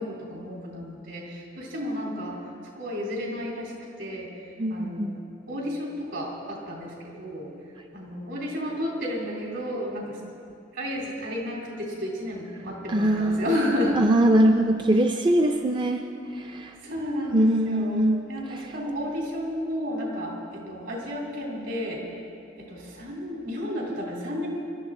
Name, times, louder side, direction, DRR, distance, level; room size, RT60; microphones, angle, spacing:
voice 1, 0.0-2.4 2.8-3.7 4.0-4.3 4.7-5.2 5.5-7.5 7.9-10.2 10.7-14.0 16.8-22.0 22.6-24.5, equal, 70° right, -3 dB, 3.6 m, -32 dB
voice 2, 4.6-5.2 12.9-13.5 14.0-16.1 16.3-16.7 17.3-18.3, right 1 dB, 25° right, 5 dB, 0.4 m, -22 dB
23.0 x 12.0 x 3.8 m, 2.5 s
head